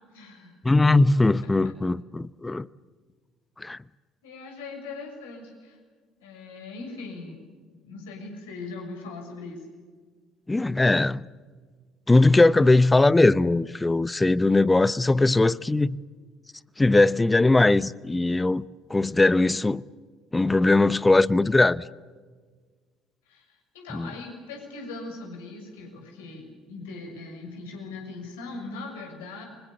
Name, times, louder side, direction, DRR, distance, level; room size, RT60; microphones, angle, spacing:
voice 1, 0.1-0.6 4.2-5.8 6.2-7.4 7.8-9.6 23.3-29.4, left 3 dB, 75° left, 6.6 m, -40 dB
voice 2, 0.6-2.7 3.6-3.8 10.5-11.2 12.1-16.0 16.8-19.8 20.3-21.8 23.9-24.1, left 2 dB, 15° left, 0.8 m, -20 dB
30.0 x 24.5 x 7.1 m
figure-of-eight pair, 55°, 0 cm